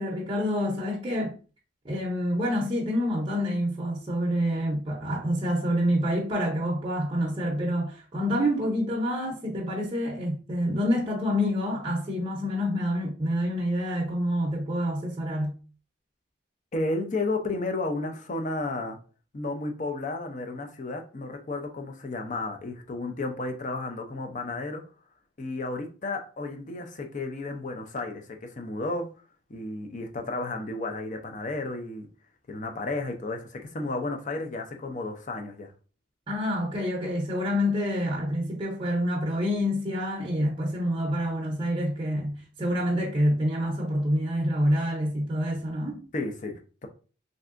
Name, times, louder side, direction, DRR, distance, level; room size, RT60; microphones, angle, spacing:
voice 1, 0.0-1.3 1.8-15.5 36.3-46.0, equal, 25° right, 0.6 m, -27 dB
voice 2, 16.7-19.0 19.3-24.8 25.4-29.1 29.5-32.1 32.5-35.7 46.1-46.9, left 2 dB, 40° left, 0.5 m, -32 dB
3.3 x 2.6 x 2.5 m
head